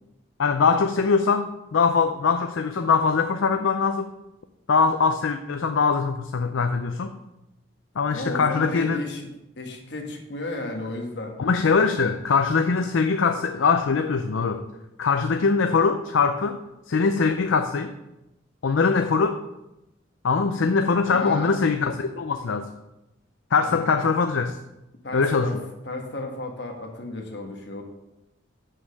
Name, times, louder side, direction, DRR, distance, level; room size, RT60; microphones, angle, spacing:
voice 1, 0.4-4.1 4.7-7.1 8.0-9.0 11.4-14.6 15.0-16.6 16.9-17.9 18.6-19.4 20.2-22.7 23.5-24.6 25.1-25.5, left 5 dB, 70° left, 7 dB, 0.5 m, -22 dB
voice 2, 8.1-9.3 9.6-11.4 21.1-21.6 23.6-23.8 25.0-25.6 25.8-27.8, left 2 dB, 55° left, 2 dB, 1.5 m, -33 dB
6.4 x 6.2 x 6.4 m, 0.92 s
head